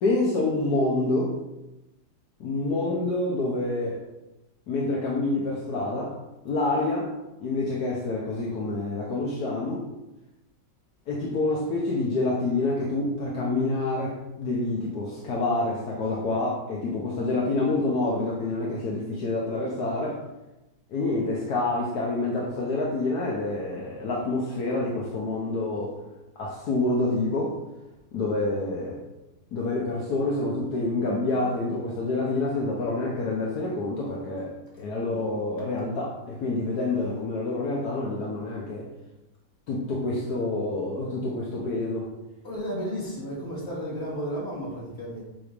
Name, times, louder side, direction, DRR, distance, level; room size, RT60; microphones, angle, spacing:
voice 1, 0.0-1.3 2.4-4.0 4.7-6.1 6.4-7.1 7.4-9.8 11.1-20.2 20.9-26.0 26.4-27.6 28.1-29.0 29.5-34.5 34.8-38.9 39.7-42.1, left 2 dB, 70° left, -3 dB, 1.4 m, -27 dB
voice 2, 42.4-45.2, equal, 40° left, -6 dB, 2.4 m, -33 dB
7.6 x 3.0 x 5.1 m, 0.99 s
omnidirectional pair, 1.8 m